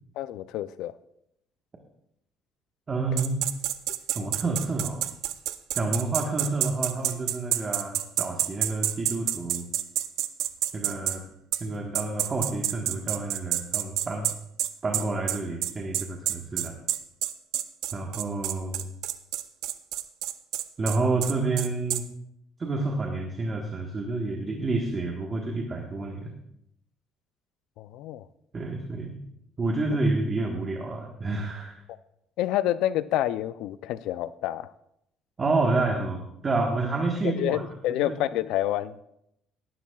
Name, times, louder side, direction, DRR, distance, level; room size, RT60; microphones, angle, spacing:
voice 1, 0.2-0.9 4.2-4.3 27.8-28.3 32.4-34.7 35.4-35.5 37.2-39.0, left 13 dB, 80° left, 15 dB, 0.4 m, -28 dB
voice 2, 2.9-3.4 4.1-5.1 5.7-9.7 10.7-11.2 11.6-14.3 14.8-16.8 17.9-18.9 20.8-22.1 22.6-26.3 28.5-29.2 29.6-31.8 35.4-37.6 37.9-38.2, right 3 dB, 25° right, 1 dB, 1.3 m, -29 dB
sound 1, 3.2-11.2 11.5-11.6 11.9-22.0, right 13 dB, 75° right, 0.6 m, -28 dB
17.5 x 12.0 x 2.4 m, 0.77 s
cardioid pair, 130°, 0 cm